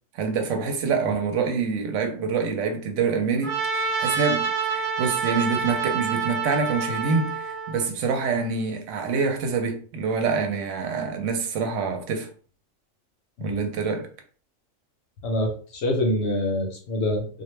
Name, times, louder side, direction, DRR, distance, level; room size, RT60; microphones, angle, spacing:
voice 1, 0.1-12.3 13.4-14.1, right 5 dB, 70° right, 0.9 m, -26 dB
Trumpet, 3.4-7.9, right 6 dB, 45° right, 0.8 m, -27 dB
voice 2, 15.2-17.4, left 1 dB, 65° left, 0.8 m, -26 dB
2.3 x 2.1 x 3.1 m
omnidirectional pair, 1.4 m